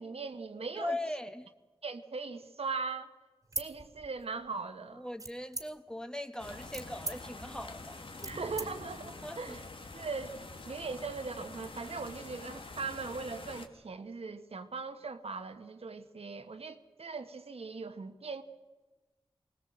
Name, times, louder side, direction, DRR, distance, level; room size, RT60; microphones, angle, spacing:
voice 1, 0.0-1.0 1.8-3.1 3.6-5.1 8.2-9.6 9.9-18.4, right 4 dB, 75° right, 8 dB, 1.3 m, -40 dB
voice 2, 0.8-1.5 5.0-8.3 9.2-9.6, left 1 dB, 5° left, 9 dB, 1.1 m, -40 dB
sound 1, 3.4-4.5 5.2-6.0 6.5-8.7, right 2 dB, 35° right, 2.0 m, -41 dB
sound 2, 6.4-13.7, left 3 dB, 55° left, 1.7 m, -46 dB
20.5 x 19.0 x 7.7 m, 1.2 s
wide cardioid pair, 75°, 10 cm